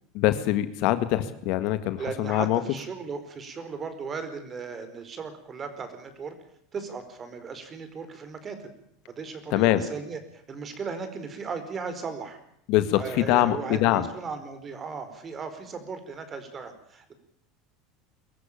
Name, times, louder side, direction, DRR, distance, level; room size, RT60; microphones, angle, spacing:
voice 1, 0.1-2.6 9.5-9.9 12.7-14.1, left 14 dB, 65° left, 11 dB, 1.8 m, -23 dB
voice 2, 2.0-6.3 6.7-8.7 9.1-12.4 12.9-17.1, right 5 dB, 30° right, 9 dB, 4.7 m, -36 dB
23.0 x 15.0 x 8.7 m, 0.72 s
hypercardioid pair, 90°, 0 cm